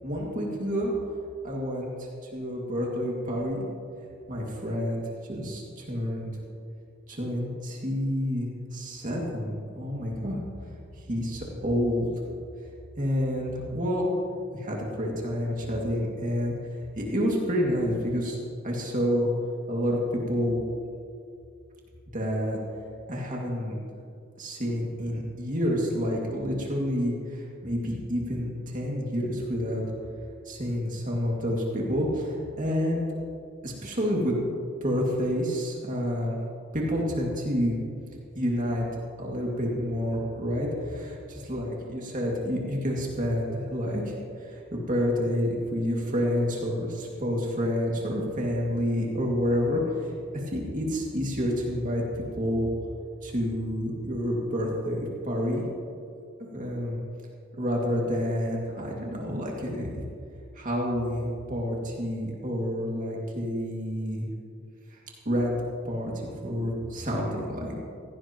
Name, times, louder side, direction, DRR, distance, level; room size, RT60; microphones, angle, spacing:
voice 1, 0.0-0.9 1.4-1.9 2.2-3.6 4.3-6.3 7.1-10.4 11.0-12.1 13.0-14.1 14.5-16.5 17.0-19.3 19.7-20.6 22.1-22.6 23.1-23.8 24.4-29.8 30.4-33.0 33.6-34.4 34.8-36.4 36.7-37.8 38.3-52.7 53.2-55.6 56.5-57.0 57.6-59.9 60.6-64.2 64.9-65.0 65.3-67.8, equal, 40° right, -2 dB, 2.3 m, -29 dB
16.5 x 16.0 x 3.0 m, 2.4 s
head